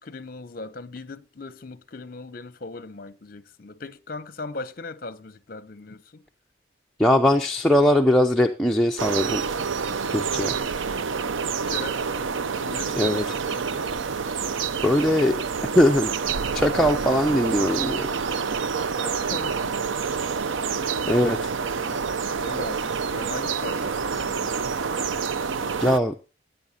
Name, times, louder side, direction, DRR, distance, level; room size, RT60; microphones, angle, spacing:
voice 1, 0.0-6.2 11.4-12.2 12.6-13.9 19.0-20.0 21.7-22.0 22.3-24.5, left 3 dB, 45° left, 0.7 m, -39 dB
voice 2, 7.0-9.4 10.1-10.5 13.0-13.2 14.8-15.4 15.7-16.1 16.5-18.1 21.1-21.5 25.8-26.1, left 1 dB, ahead, 0.5 m, -20 dB
sound 1, 9.0-26.0, right 5 dB, 75° right, 0.5 m, -27 dB
15.5 x 9.0 x 2.8 m
head